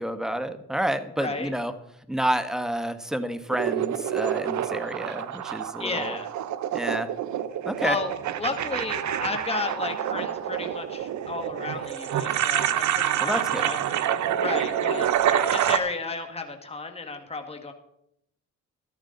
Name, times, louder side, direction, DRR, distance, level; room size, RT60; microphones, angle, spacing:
voice 1, 0.0-1.7 2.1-6.2 6.7-7.1 7.6-8.0 13.2-13.7, right 1 dB, ahead, 9 dB, 1.3 m, -29 dB
voice 2, 1.2-1.5 5.8-6.3 7.8-14.0 14.4-17.7, left 3 dB, 20° left, 5 dB, 2.0 m, -33 dB
sound 1, 3.5-15.8, right 10 dB, 70° right, 1.1 m, -27 dB
13.5 x 13.5 x 4.0 m, 0.76 s
cardioid pair, 90°, 30 cm